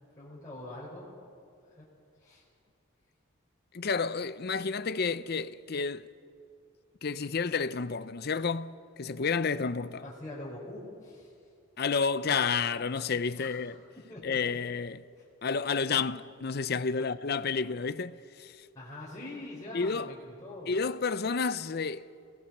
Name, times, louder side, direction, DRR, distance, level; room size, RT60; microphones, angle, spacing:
voice 1, 0.2-1.1 1.6-1.8 2.2-2.4 10.0-11.3 13.3-13.6 14.1-14.6 15.2-15.3 18.7-20.7, left 2 dB, 15° left, 4.1 m, -43 dB
voice 2, 3.7-6.1 7.0-10.0 11.8-13.8 14.2-15.0 15.4-18.7 19.7-20.1 20.7-22.1, left 5 dB, 45° left, 0.5 m, -30 dB
28.0 x 19.0 x 6.0 m
head